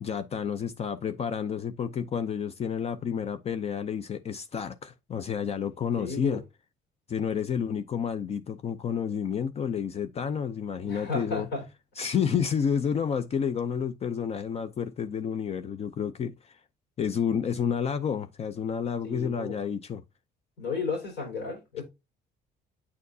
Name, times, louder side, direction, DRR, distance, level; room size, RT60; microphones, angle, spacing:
voice 1, 0.0-6.4 7.1-11.5 12.0-16.6 17.0-20.0, left 7 dB, 40° left, 0.5 m, -30 dB
voice 2, 6.0-6.4 10.8-11.6 19.0-19.6 20.6-21.8, left 4 dB, 85° left, 4.2 m, -33 dB
8.4 x 4.4 x 2.7 m
cardioid pair, 110°, 17 cm